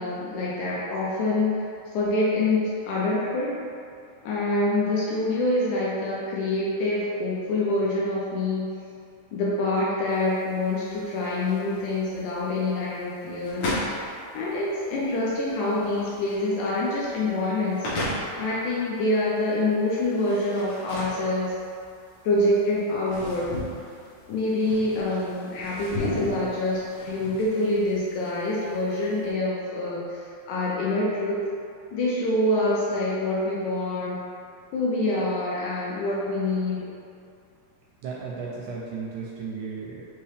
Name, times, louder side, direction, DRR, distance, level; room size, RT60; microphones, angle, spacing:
voice 1, 0.0-3.6 4.2-8.7 9.3-13.7 14.3-17.9 18.4-21.5 22.2-23.6 24.3-31.4 31.9-34.2 34.7-36.9, left 2 dB, 80° left, -6 dB, 1.9 m, -26 dB
sound 1, 10.1-29.3, left 1 dB, 65° left, 2.0 m, -36 dB
voice 2, 38.0-40.0, right 5 dB, 80° right, -4 dB, 1.9 m, -34 dB
5.5 x 2.8 x 3.3 m, 2.4 s
omnidirectional pair, 3.9 m